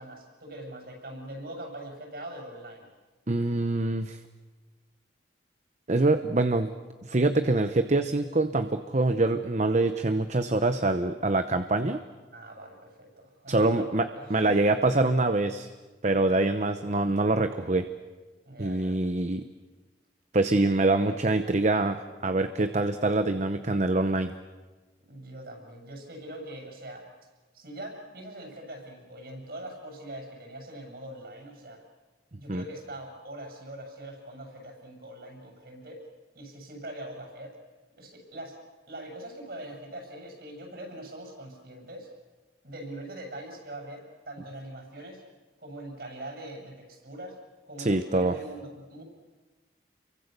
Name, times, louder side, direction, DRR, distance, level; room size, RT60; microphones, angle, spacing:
voice 1, 0.0-2.9 12.3-14.6 16.2-16.4 18.4-19.0 25.1-27.1 27.5-31.8 32.4-36.0 36.3-37.6 38.0-38.6 38.9-42.1 42.6-45.2 45.6-47.4 47.7-49.0, right 1 dB, 60° right, 2 dB, 7.5 m, -42 dB
voice 2, 3.3-4.2 5.9-6.7 7.0-12.0 13.5-14.0 14.3-15.7 16.0-17.9 18.6-19.4 20.3-24.3 32.5-32.6 47.8-48.3, right 2 dB, 40° right, 9 dB, 0.9 m, -25 dB
29.5 x 23.5 x 6.8 m, 1.3 s
head